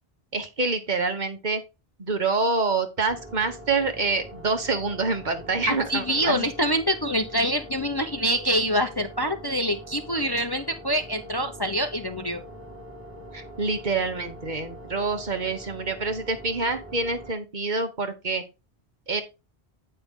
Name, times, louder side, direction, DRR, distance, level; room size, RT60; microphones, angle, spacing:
voice 1, 0.3-1.6 2.0-6.5 13.3-18.4 19.1-19.2, right 3 dB, 45° right, 7 dB, 1.2 m, -26 dB
sound 1, 3.1-17.3, equal, 10° right, 1.4 m, -43 dB
voice 2, 5.7-12.4, equal, 25° left, 6 dB, 0.6 m, -25 dB
8.7 x 5.4 x 3.7 m, 0.27 s
omnidirectional pair, 1.1 m